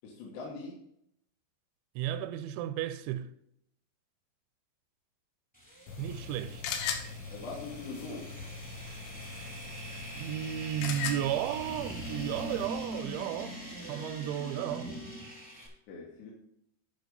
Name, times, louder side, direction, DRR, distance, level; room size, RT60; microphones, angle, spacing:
voice 1, 0.0-0.8 7.3-8.3 15.9-16.3, left 3 dB, 75° left, 3.4 m, -42 dB
voice 2, 2.0-3.3 6.0-6.8 10.1-13.6 13.9-14.9, right 12 dB, 90° right, 2.9 m, -34 dB
sound 1, 5.5-15.7, equal, 5° left, 0.7 m, -43 dB
sound 2, 5.9-12.7, left 6 dB, 90° left, 3.3 m, -40 dB
11.0 x 5.0 x 5.3 m
omnidirectional pair, 5.1 m